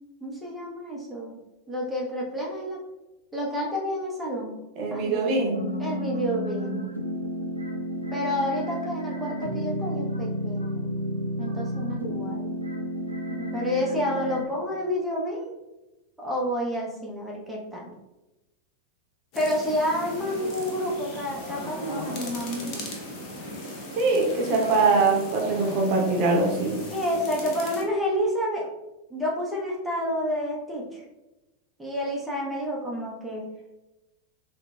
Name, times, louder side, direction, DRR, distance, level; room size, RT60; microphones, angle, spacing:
voice 1, 0.2-1.3 1.7-2.8 3.3-4.5 4.9-5.4 5.8-6.8 8.1-10.9 11.4-12.5 13.5-15.6 16.2-17.9 19.4-22.8 26.9-28.7 29.1-31.0 31.8-33.5, equal, 5° right, -4 dB, 0.6 m, -29 dB
voice 2, 4.8-5.6 13.3-13.7 24.0-26.8, right 3 dB, 40° right, -1 dB, 0.7 m, -23 dB
sound 1, 5.5-14.5, equal, 90° right, 0.4 m, -31 dB
sound 2, 19.3-27.8, left 1 dB, 40° left, 0.7 m, -37 dB
3.8 x 2.1 x 2.2 m, 1.0 s
figure-of-eight pair, 90°, 0 cm